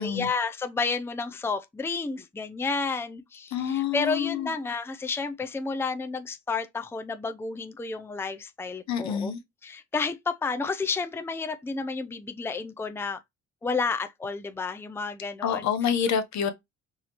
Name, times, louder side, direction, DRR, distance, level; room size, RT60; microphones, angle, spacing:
voice 1, 0.0-9.3 9.6-13.2 13.6-15.7, left 4 dB, 10° left, 0.5 m, -31 dB
voice 2, 3.5-4.5 8.9-9.4 15.4-16.5, left 8 dB, 65° left, 0.9 m, -27 dB
4.7 x 2.7 x 2.9 m
cardioid pair, 90°, 30 cm